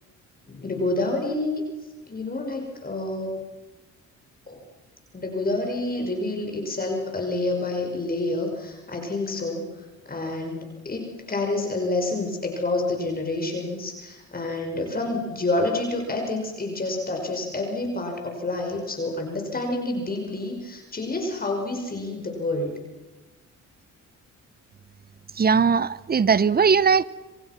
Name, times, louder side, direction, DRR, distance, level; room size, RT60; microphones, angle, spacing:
voice 1, 0.5-1.6 2.1-3.4 4.5-4.6 5.1-9.7 10.1-22.8, left 2 dB, 30° left, 3 dB, 5.7 m, -28 dB
voice 2, 25.4-27.0, right 6 dB, 30° right, 19 dB, 0.9 m, -19 dB
27.5 x 25.5 x 6.0 m, 1.1 s
cardioid pair, 90°, 30 cm